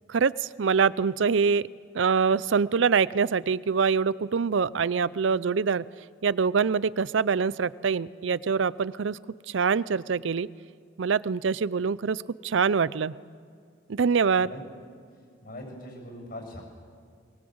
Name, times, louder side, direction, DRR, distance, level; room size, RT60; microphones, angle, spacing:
voice 1, 0.1-1.6 1.9-5.8 6.2-9.2 9.5-10.5 11.0-13.1 13.9-14.5, right 5 dB, 80° right, 19 dB, 0.5 m, -24 dB
voice 2, 14.4-14.8 15.4-16.6, left 1 dB, 50° left, 2 dB, 7.4 m, -41 dB
22.5 x 21.5 x 7.9 m, 2.2 s
head